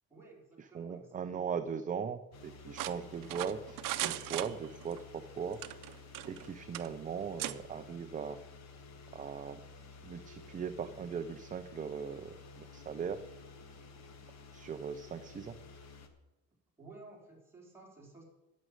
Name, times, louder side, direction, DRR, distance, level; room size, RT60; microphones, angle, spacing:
voice 1, 0.1-1.6 16.8-18.2, right 3 dB, 5° right, -3 dB, 3.7 m, -54 dB
voice 2, 0.7-5.6 6.3-8.4 9.1-9.6 10.0-13.2 14.5-15.6, right 7 dB, 25° right, 9 dB, 0.4 m, -39 dB
sound 1, 2.3-16.1, left 4 dB, 50° left, 1.4 m, -53 dB
sound 2, 2.8-5.0 5.5-6.5 6.7-6.9 7.4-7.6, right 14 dB, 65° right, 0.7 m, -38 dB
12.5 x 6.3 x 9.3 m, 1.0 s
cardioid pair, 155°, 35 cm